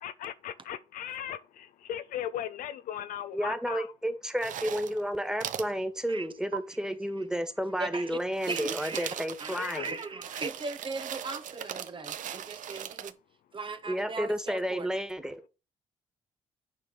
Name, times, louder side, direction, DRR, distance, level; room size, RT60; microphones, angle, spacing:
voice 1, 0.0-3.9 9.5-10.0, left 10 dB, 65° left, 0.6 m, -38 dB
voice 2, 3.3-9.9 13.9-15.4, equal, 5° right, 1.8 m, -31 dB
sound 1, 4.4-5.0 5.4-5.7 6.5-6.6 8.2-13.1, right 10 dB, 60° right, 0.6 m, -39 dB
voice 3, 7.8-8.2 8.5-9.1 9.4-13.1 13.5-14.9, right 3 dB, 35° right, 0.9 m, -38 dB
9.1 x 4.6 x 5.6 m
hypercardioid pair, 45°, 15 cm